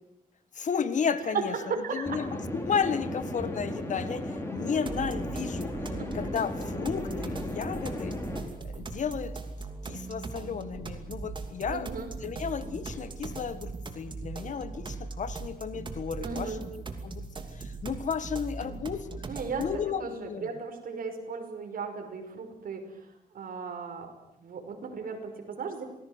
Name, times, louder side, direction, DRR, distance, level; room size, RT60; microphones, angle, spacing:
voice 1, 0.6-5.7 6.1-8.2 8.6-9.4 9.8-11.9 12.2-17.3 17.6-19.1 19.6-20.5, left 6 dB, 55° left, 13 dB, 1.8 m, -33 dB
voice 2, 1.2-2.2 6.0-6.1 11.7-12.1 16.2-16.6 19.3-19.7 20.0-23.1 23.3-24.1 24.4-25.8, right 5 dB, 75° right, 5 dB, 5.6 m, -36 dB
sound 1, 2.0-8.4, left 1 dB, 15° left, 5.6 m, -35 dB
sound 2, 4.9-19.9, right 3 dB, 35° right, 2.8 m, -40 dB
27.0 x 19.5 x 8.1 m, 0.84 s
wide cardioid pair, 155°, 15 cm